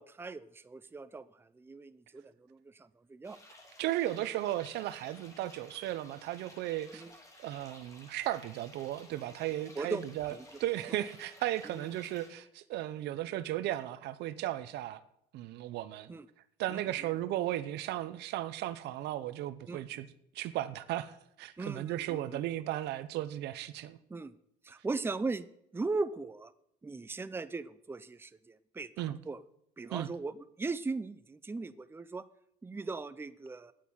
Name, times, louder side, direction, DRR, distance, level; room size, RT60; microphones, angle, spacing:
voice 1, 0.0-3.4 6.9-7.1 9.8-10.0 10.3-10.4 11.7-11.9 16.1-16.3 16.7-16.8 19.7-19.8 21.6-22.4 24.1-24.3 24.6-25.5 25.7-26.5 26.8-28.9 29.3-29.4 29.8-32.2 32.6-33.7, right 3 dB, 15° right, 0.6 m, -38 dB
sound 1, 3.2-12.3, left 1 dB, 20° left, 2.8 m, -56 dB
voice 2, 3.8-7.0 7.4-15.0 15.3-16.1 16.6-20.1 20.3-24.0 29.0-29.2 29.9-30.1, right 14 dB, 80° right, 0.8 m, -35 dB
9.3 x 8.4 x 9.4 m
cardioid pair, 110°, 17 cm